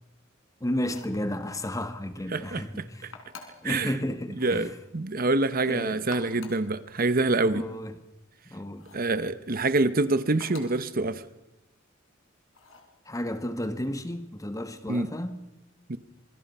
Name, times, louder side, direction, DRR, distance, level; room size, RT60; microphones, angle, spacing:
voice 1, 0.6-3.1 3.6-4.7 5.7-6.1 7.5-8.0 8.4-8.9 13.1-15.4, left 1 dB, 15° left, 1.4 m, -32 dB
sound 1, 0.7-1.2 3.1-3.7 4.3-4.6 5.9-6.7 8.8-9.1 10.4-10.8 12.5-12.9, left 4 dB, 80° left, 4.4 m, -47 dB
voice 2, 2.3-2.6 3.0-3.1 3.6-3.9 4.4-7.6 8.9-11.2 14.9-15.1 15.9-16.0, right 2 dB, 45° right, 1.0 m, -26 dB
27.0 x 24.5 x 5.6 m
head